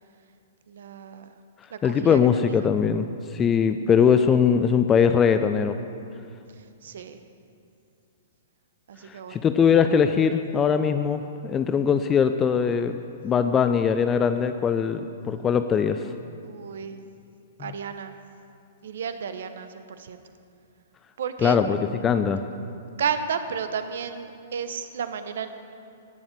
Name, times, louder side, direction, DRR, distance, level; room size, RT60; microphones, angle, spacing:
voice 1, 0.7-1.3 1.7-2.2 2.5-2.7 6.8-7.2 8.9-9.5 16.4-17.0 17.6-18.2 18.8-20.2 21.2-21.6 23.0-25.5, right 7 dB, 65° right, 10 dB, 0.9 m, -32 dB
voice 2, 1.8-3.1 3.3-5.8 9.1-13.0 13.2-16.0 17.6-17.7 21.4-21.8 22.0-22.4, left 7 dB, 20° left, 9 dB, 0.5 m, -21 dB
18.0 x 7.2 x 6.7 m, 2.5 s
figure-of-eight pair, 110°, 0 cm